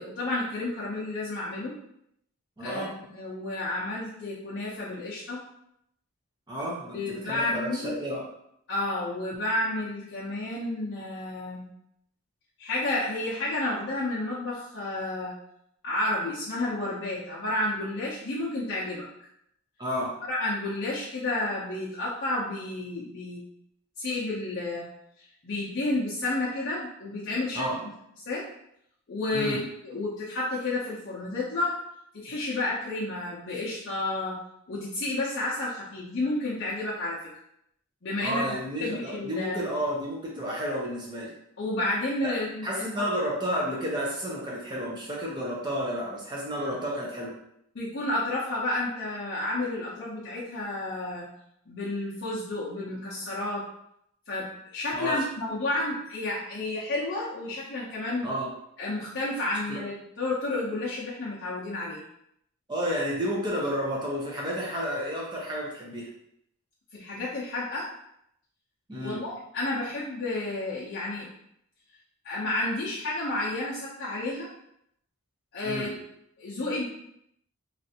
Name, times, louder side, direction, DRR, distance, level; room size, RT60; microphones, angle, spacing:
voice 1, 0.0-1.7 2.6-5.4 6.9-8.0 8.7-11.7 12.6-15.3 15.8-19.1 20.3-23.4 24.0-24.8 25.2-27.7 28.3-28.5 29.1-31.8 32.1-34.4 34.7-37.2 38.0-38.4 38.8-39.6 41.6-42.9 47.7-51.3 51.7-53.7 54.3-58.3 58.8-62.0 66.9-67.9 69.0-71.3 72.2-74.5 75.5-75.9 76.4-76.9, left 2 dB, 50° left, -9 dB, 0.6 m, -31 dB
voice 2, 2.6-2.9 6.5-8.3 19.8-20.1 27.5-27.8 29.3-29.6 38.2-41.3 42.2-42.3 42.6-47.3 54.9-55.2 58.2-58.5 59.7-59.8 62.7-66.1 68.9-69.2 75.6-75.9, equal, 20° right, -4 dB, 0.6 m, -31 dB
3.2 x 2.5 x 2.8 m, 0.75 s
head